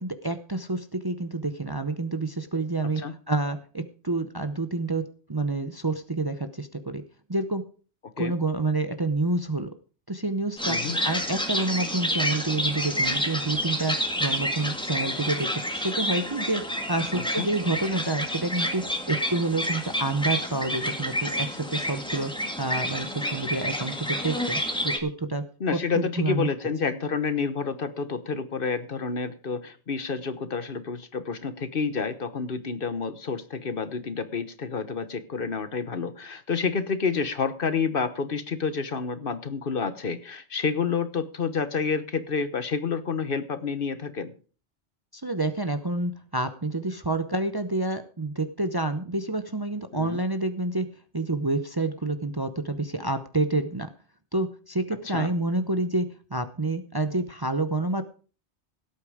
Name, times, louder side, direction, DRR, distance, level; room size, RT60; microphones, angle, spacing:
voice 1, 0.0-3.0 3.3-7.0 7.3-7.6 8.2-9.7 10.1-22.3 22.6-25.4 25.7-26.5 45.1-50.9 51.1-53.9 54.3-56.1 56.3-58.0, right 2 dB, 25° right, 10 dB, 0.7 m, -28 dB
voice 2, 2.8-3.1 8.2-8.3 10.7-11.0 17.1-17.5 25.6-44.3 49.9-50.2 55.1-55.3, left 5 dB, 55° left, 13 dB, 1.2 m, -29 dB
sound 1, 10.6-25.0, equal, 5° left, 1.8 m, -29 dB
17.0 x 8.5 x 4.9 m, 0.40 s
omnidirectional pair, 1.2 m